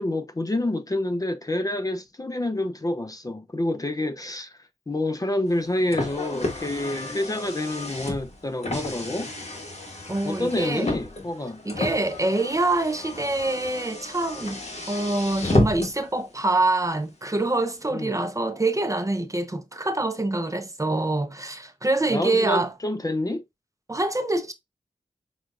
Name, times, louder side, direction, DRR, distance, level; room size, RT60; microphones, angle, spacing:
voice 1, 0.0-9.3 10.2-11.6 17.9-18.2 22.1-23.4, left 1 dB, 25° left, 0.5 m, -28 dB
Car, 5.5-16.1, left 2 dB, 50° left, 1.3 m, -31 dB
voice 2, 10.1-10.9 11.7-22.7 23.9-24.5, right 2 dB, 20° right, 0.5 m, -25 dB
6.1 x 2.3 x 2.5 m
cardioid pair, 55°, 15 cm